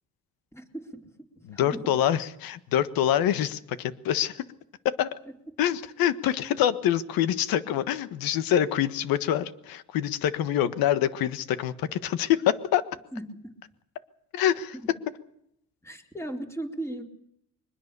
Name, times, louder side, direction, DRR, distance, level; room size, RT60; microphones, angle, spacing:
voice 1, 1.4-4.4 4.8-5.1 5.6-12.8 14.3-14.7, left 11 dB, 85° left, 13 dB, 1.5 m, -25 dB
voice 2, 15.8-17.0, right 1 dB, 10° left, 3 dB, 4.2 m, -35 dB
23.0 x 21.0 x 6.9 m, 0.74 s
cardioid pair, 105°, 34 cm